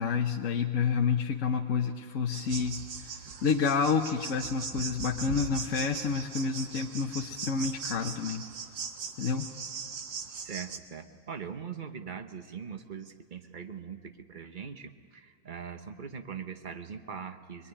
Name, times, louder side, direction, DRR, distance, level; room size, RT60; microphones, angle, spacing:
voice 1, 0.0-8.4 9.2-9.5, left 5 dB, 50° left, 2 dB, 1.1 m, -29 dB
sound 1, 2.3-10.8, right 5 dB, 75° right, 2.0 m, -40 dB
voice 2, 10.4-17.7, right 7 dB, 35° right, 8 dB, 0.9 m, -41 dB
24.0 x 22.5 x 9.9 m, 2.4 s
omnidirectional pair, 2.0 m